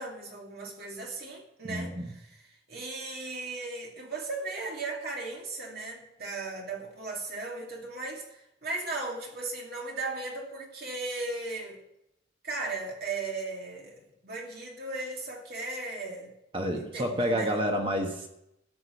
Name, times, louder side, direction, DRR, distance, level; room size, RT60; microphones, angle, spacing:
voice 1, 0.0-1.9 2.7-11.8 12.4-16.3 16.8-17.6, right 3 dB, 50° right, 0 dB, 2.6 m, -36 dB
voice 2, 1.6-2.0 16.5-18.3, equal, 25° right, 3 dB, 1.3 m, -29 dB
13.0 x 6.1 x 8.3 m, 0.82 s
head